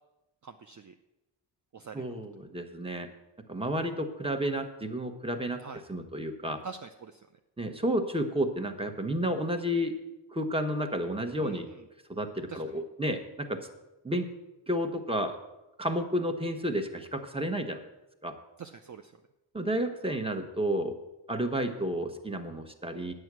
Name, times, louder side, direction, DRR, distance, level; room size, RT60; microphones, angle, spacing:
voice 1, 0.4-0.9 1.7-2.1 5.6-5.8 6.5-7.3 11.4-11.8 12.5-12.8 18.6-19.1, right 5 dB, 40° right, 7 dB, 0.6 m, -45 dB
voice 2, 1.9-3.1 3.5-5.6 5.9-6.6 7.6-9.9 10.3-11.7 12.1-13.6 14.0-14.3 14.7-15.4 15.8-17.8 18.2-18.3 19.5-20.9 21.3-23.1, equal, 10° right, 7 dB, 1.2 m, -31 dB
9.2 x 7.9 x 6.2 m, 0.99 s
cardioid pair, 60°, 46 cm